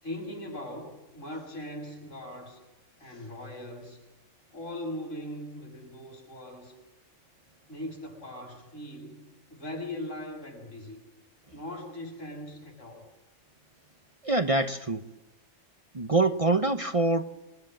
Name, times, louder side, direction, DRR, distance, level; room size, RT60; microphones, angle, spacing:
voice 1, 0.0-2.6 3.0-4.0 4.5-6.8 7.7-11.0 11.5-13.1, left 1 dB, 80° left, 7.8 m, -40 dB
voice 2, 14.2-15.0 15.9-17.3, right 2 dB, 30° right, 0.9 m, -25 dB
27.5 x 22.0 x 7.6 m
omnidirectional pair, 1.3 m